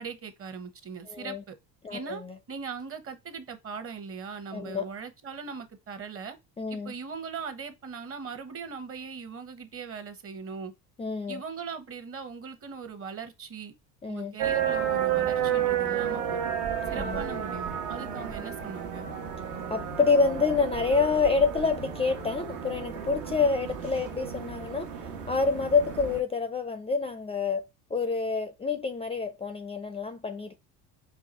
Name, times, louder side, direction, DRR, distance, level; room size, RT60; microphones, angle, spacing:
voice 1, 0.0-1.6 1.9-6.4 6.7-10.7 11.3-13.7 14.1-16.5 16.9-19.1, right 5 dB, 35° right, 1.0 m, -40 dB
voice 2, 1.1-1.4 1.8-2.3 4.5-4.9 6.6-6.9 11.0-11.4 14.0-14.4 16.9-17.2 19.7-24.9 25.3-30.6, left 4 dB, 15° left, 0.4 m, -27 dB
sound 1, 14.4-26.2, right 9 dB, 75° right, 1.2 m, -32 dB
4.7 x 2.4 x 4.1 m
supercardioid pair, 95°, 37 cm